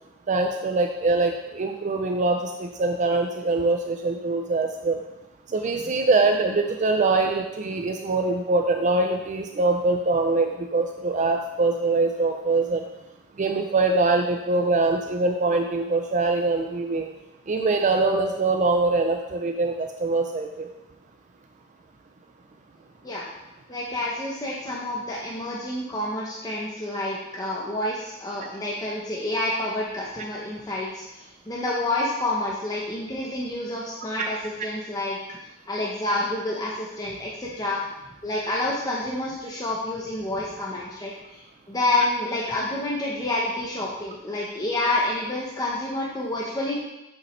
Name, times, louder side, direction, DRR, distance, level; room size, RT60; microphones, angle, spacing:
voice 1, 0.3-5.0 5.5-12.8 13.4-17.1 17.5-20.7 34.2-34.3, right 3 dB, 35° right, 4 dB, 0.4 m, -23 dB
voice 2, 23.7-31.0 31.5-35.2 35.7-37.8 38.2-46.9, left 2 dB, 20° left, -5 dB, 0.9 m, -28 dB
7.8 x 5.9 x 3.2 m, 0.94 s
head